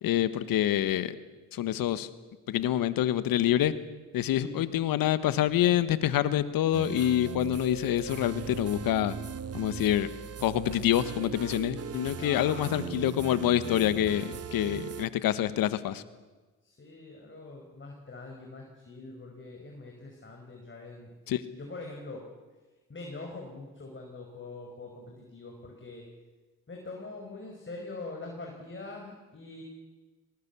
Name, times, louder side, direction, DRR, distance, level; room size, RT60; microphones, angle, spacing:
voice 1, 0.0-1.1 1.5-2.1 2.5-3.7 4.1-9.1 9.5-10.1 10.4-16.0 21.3-21.4, left 12 dB, 65° left, 14 dB, 1.4 m, -26 dB
sound 1, 6.7-15.1, right 7 dB, 40° right, 1.1 m, -39 dB
voice 2, 12.1-13.0 16.6-22.3 22.9-26.1 26.7-29.6, left 2 dB, 30° left, 1 dB, 5.1 m, -43 dB
19.0 x 19.0 x 8.4 m, 1.3 s
hypercardioid pair, 50°, 37 cm